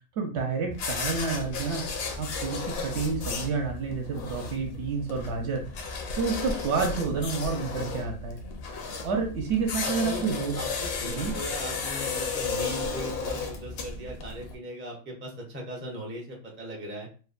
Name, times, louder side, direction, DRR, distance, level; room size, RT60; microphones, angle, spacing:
voice 1, 0.2-1.8 2.2-5.6 6.2-8.4 8.8-10.5 11.0-11.3, right 4 dB, 65° right, 3 dB, 0.9 m, -29 dB
sound 1, 0.7-14.5, left 4 dB, 65° left, 0.7 m, -34 dB
voice 2, 9.8-10.3 10.5-17.1, right 1 dB, 15° right, -2 dB, 0.4 m, -39 dB
2.8 x 2.1 x 2.4 m, 0.38 s
omnidirectional pair, 1.3 m